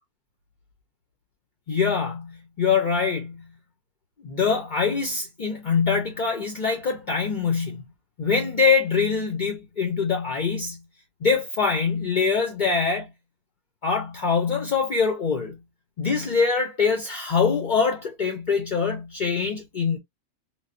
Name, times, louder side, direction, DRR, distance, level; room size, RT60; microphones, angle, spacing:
voice 1, 1.7-3.5 4.2-7.8 8.2-10.8 11.2-13.1 13.8-15.6 16.0-20.0, left 5 dB, 55° left, 0.5 m, -24 dB
3.8 x 2.1 x 2.4 m
omnidirectional pair, 1.6 m